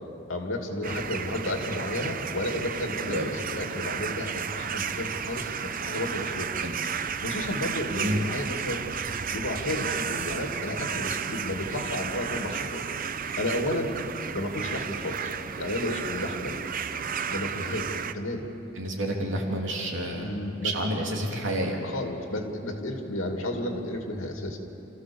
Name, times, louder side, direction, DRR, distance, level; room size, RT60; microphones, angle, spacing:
voice 1, 0.3-6.5 7.2-8.9 9.3-12.8 13.4-13.9 14.3-16.6 17.2-18.5 20.1-20.7 21.8-24.6, left 1 dB, 90° left, 3 dB, 2.5 m, -32 dB
sound 1, 0.8-18.1, right 7 dB, 45° right, 0.6 m, -33 dB
voice 2, 3.0-3.3 6.6-6.7 7.9-8.2 18.7-20.3 20.6-21.8, right 1 dB, 70° right, -1 dB, 3.1 m, -29 dB
27.0 x 15.0 x 7.1 m, 2.9 s
head